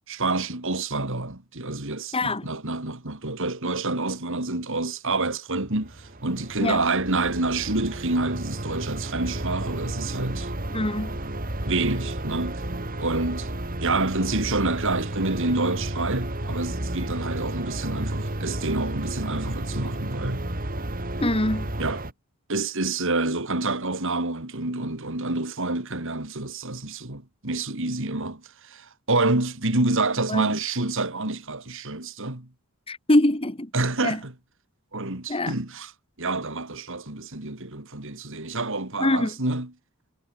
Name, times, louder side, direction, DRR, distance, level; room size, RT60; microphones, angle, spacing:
voice 1, 0.1-10.5 11.6-12.6 13.0-13.5 13.8-20.5 21.8-22.0 22.5-32.5 33.7-34.3 34.9-35.9 36.2-39.7, right 2 dB, 60° right, 3.2 m, -28 dB
voice 2, 2.1-2.5 6.6-6.8 10.7-11.2 21.2-21.7 30.3-30.5 32.9-33.7 34.0-34.2 35.3-35.5 39.0-39.4, left 1 dB, 25° left, 2.1 m, -23 dB
sound 1, 5.6-22.1, right 1 dB, 40° right, 3.4 m, -32 dB
head